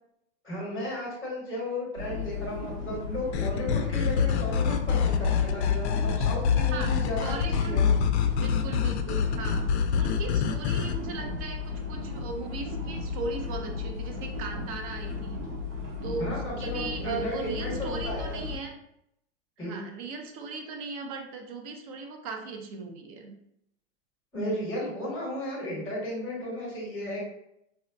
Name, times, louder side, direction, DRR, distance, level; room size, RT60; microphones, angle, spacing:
voice 1, 0.4-7.9 16.2-18.4 19.6-19.8 24.3-27.2, left 1 dB, 5° left, -6 dB, 0.8 m, -34 dB
sound 1, 2.0-18.6, left 4 dB, 85° right, 0.9 m, -35 dB
sound 2, 3.3-11.0, left 7 dB, 70° left, 0.5 m, -26 dB
voice 2, 6.7-7.8 8.4-9.7 9.9-15.4 16.0-18.8 19.6-23.3, right 4 dB, 35° right, 4 dB, 0.4 m, -38 dB
4.2 x 2.0 x 2.5 m, 0.77 s
supercardioid pair, 150°, 36 cm